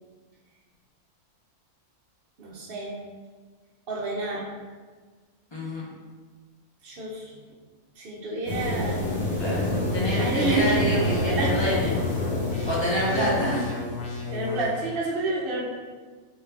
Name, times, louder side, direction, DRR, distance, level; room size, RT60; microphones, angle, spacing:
voice 1, 2.4-3.0 3.9-4.5 6.8-7.4 8.0-9.1 10.2-11.6 12.5-12.7 13.1-13.3 14.2-15.6, right 2 dB, 50° right, -3 dB, 0.7 m, -29 dB
voice 2, 5.5-5.9 9.4-12.0 12.6-13.6, equal, 30° left, -7 dB, 0.6 m, -27 dB
sound 1, 8.5-14.4, left 1 dB, 80° left, 1.4 m, -28 dB
sound 2, 9.6-14.6, left 4 dB, 60° left, 0.9 m, -33 dB
3.9 x 3.2 x 2.7 m, 1.4 s
omnidirectional pair, 1.6 m